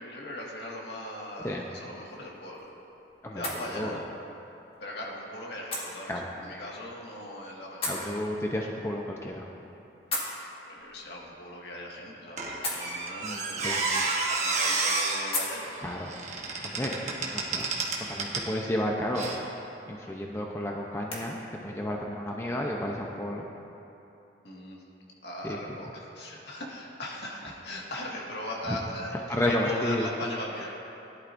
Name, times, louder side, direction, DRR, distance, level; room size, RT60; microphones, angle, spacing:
voice 1, 0.0-2.7 3.3-4.0 4.8-6.1 6.4-8.2 10.6-15.7 24.4-24.8 25.2-30.7, left 1 dB, 70° left, -3 dB, 1.9 m, -39 dB
sound 1, 1.8-21.3, left 2 dB, 30° left, 1.9 m, -42 dB
voice 2, 3.2-4.0 6.1-6.3 7.9-9.5 13.2-13.8 15.8-16.1 16.6-17.7 18.1-19.3 19.9-23.5 25.4-25.6 28.7-28.8 29.3-30.1, left 1 dB, 15° left, -1 dB, 0.7 m, -32 dB
Squeak, 12.4-18.5 19.1-19.3, right 3 dB, 40° right, 1.3 m, -30 dB
17.0 x 11.5 x 2.6 m, 2.9 s
head